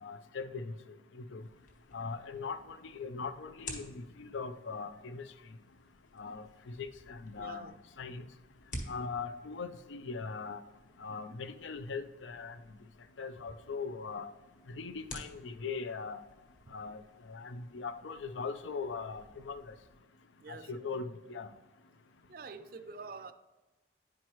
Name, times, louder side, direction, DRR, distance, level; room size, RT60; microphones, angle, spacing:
voice 1, 0.0-0.7 1.1-1.4 1.9-5.3 6.2-8.2 8.9-10.6 11.0-12.6 13.2-14.3 14.7-16.2 16.7-17.0 17.3-19.6 20.5-21.5, left 4 dB, 85° left, 0.5 m, -40 dB
sound 1, 1.4-20.0, left 1 dB, 45° left, 1.2 m, -52 dB
voice 2, 7.4-7.7 16.7-16.8 20.4-20.9 22.3-23.3, right 4 dB, 50° right, 0.4 m, -47 dB
10.0 x 4.6 x 3.1 m
head